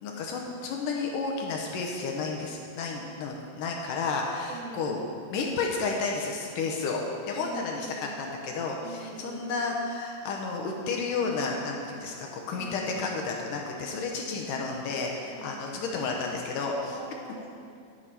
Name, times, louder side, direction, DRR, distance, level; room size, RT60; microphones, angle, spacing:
voice 1, 0.0-5.0 5.3-7.9 8.2-16.9, left 4 dB, 75° left, 0 dB, 2.2 m, -32 dB
voice 2, 4.5-5.0 7.4-8.4 8.8-9.6 12.5-12.9 14.5-15.1 15.4-15.8 16.9-17.5, right 3 dB, 85° right, -1 dB, 3.1 m, -43 dB
12.5 x 4.8 x 5.6 m, 2.4 s
omnidirectional pair, 4.2 m